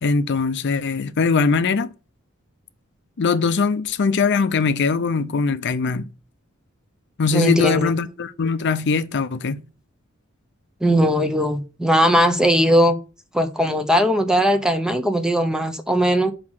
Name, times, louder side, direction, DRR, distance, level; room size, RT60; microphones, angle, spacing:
voice 1, 0.0-1.9 3.2-6.1 7.2-9.6, left 4 dB, 55° left, 0.5 m, -21 dB
voice 2, 7.3-7.9 10.8-13.0 13.3-16.3, equal, 5° right, 0.7 m, -19 dB
5.8 x 4.9 x 6.3 m
head